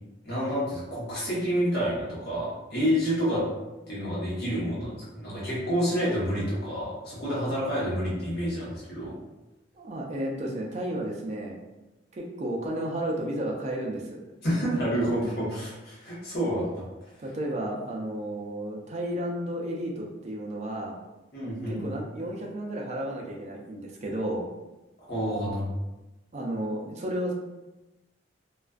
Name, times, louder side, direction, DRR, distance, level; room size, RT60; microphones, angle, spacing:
voice 1, 0.2-3.5 3.9-9.1 14.4-16.8 21.3-21.9 25.0-25.7, equal, 60° left, -7 dB, 1.0 m, -28 dB
voice 2, 9.7-11.6 12.1-14.2 17.2-21.0 21.7-24.4 26.3-27.3, right 1 dB, 40° right, -1 dB, 0.4 m, -32 dB
2.4 x 2.3 x 2.3 m, 1.0 s
head